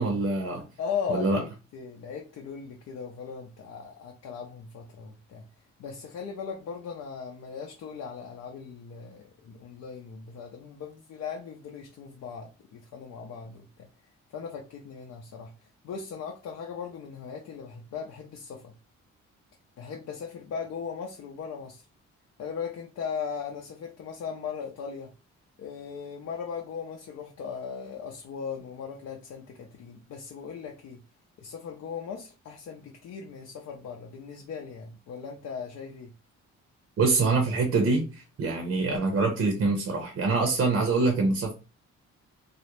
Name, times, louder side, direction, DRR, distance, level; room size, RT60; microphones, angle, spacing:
voice 1, 0.0-0.7 1.1-1.4 37.0-41.5, right 3 dB, 55° right, 0.7 m, -25 dB
voice 2, 0.8-5.4 5.8-13.9 14.3-15.5 15.8-18.7 19.8-21.8 22.4-25.1 25.6-31.0 31.4-36.1, left 6 dB, 60° left, 0.5 m, -38 dB
2.4 x 2.0 x 2.9 m
cardioid pair, 90°, 30 cm